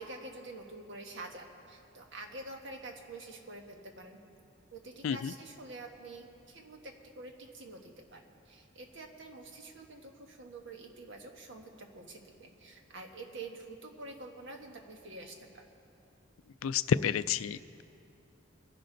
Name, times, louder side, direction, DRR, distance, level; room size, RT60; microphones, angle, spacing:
voice 1, 0.0-4.2 4.7-15.7, right 2 dB, 65° right, 3 dB, 1.4 m, -47 dB
voice 2, 16.6-17.8, left 7 dB, 85° left, 15 dB, 0.4 m, -30 dB
23.5 x 11.0 x 3.9 m, 2.6 s
head